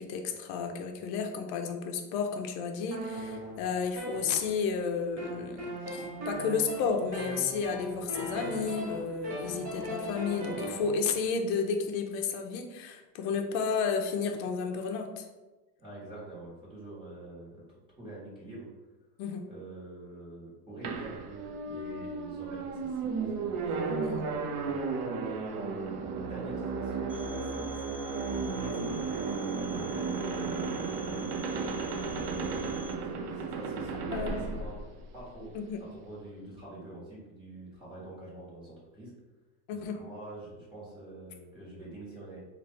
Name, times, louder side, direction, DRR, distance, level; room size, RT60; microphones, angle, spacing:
voice 1, 0.0-15.3 19.2-19.4 24.0-24.1 34.1-34.4 35.5-35.8 39.7-40.0, left 5 dB, 55° left, 4 dB, 0.7 m, -32 dB
sound 1, 2.9-4.8 5.2-11.0, right 1 dB, 35° right, 1.2 m, -38 dB
voice 2, 15.8-18.7 19.5-25.8 26.2-27.9 28.3-29.4 29.7-32.6 33.1-34.8 35.1-39.1 39.7-42.4, right 1 dB, 10° right, -8 dB, 1.3 m, -46 dB
sound 2, 20.8-35.6, right 4 dB, 75° right, 0.7 m, -34 dB
Telephone, 27.1-32.9, left 2 dB, 10° left, 1.0 m, -49 dB
3.2 x 2.6 x 4.1 m, 1.1 s
supercardioid pair, 130°, 45 cm